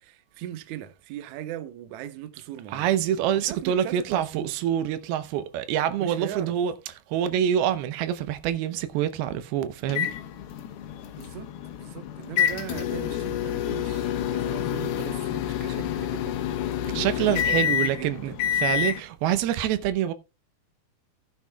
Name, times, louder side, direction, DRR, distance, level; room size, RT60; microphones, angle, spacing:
voice 1, 0.0-2.9 3.2-4.5 6.0-6.6 11.2-11.5 11.8-16.4 16.9-18.4, right 12 dB, 70° right, 1.9 m, -39 dB
voice 2, 2.7-6.7 7.1-10.1 16.9-20.1, right 10 dB, 90° right, 2.8 m, -26 dB
sound 1, 9.9-19.0, left 10 dB, 85° left, 2.9 m, -28 dB
15.5 x 9.0 x 2.2 m
omnidirectional pair, 4.3 m